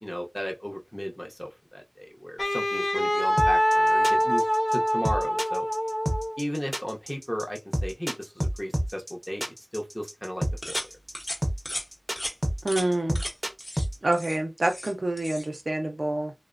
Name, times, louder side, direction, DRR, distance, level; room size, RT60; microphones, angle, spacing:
voice 1, 0.0-4.4 4.7-5.7 6.4-10.8, equal, 15° left, 0.6 m, -35 dB
Wind instrument woodwind instrument, 2.4-6.4, equal, 80° left, 0.8 m, -24 dB
sound 1, 3.4-13.9, equal, 25° right, 0.6 m, -29 dB
sound 2, 10.6-10.9 11.1-11.4 11.6-11.8 12.2-12.3 12.7-12.9 13.1-13.3 13.6-13.8 14.1-14.9 15.2-15.5, left 1 dB, 45° left, 0.8 m, -35 dB
voice 2, 12.6-13.2 14.0-16.3, right 1 dB, 75° right, 0.4 m, -27 dB
2.9 x 2.0 x 2.4 m
wide cardioid pair, 40°, 0 cm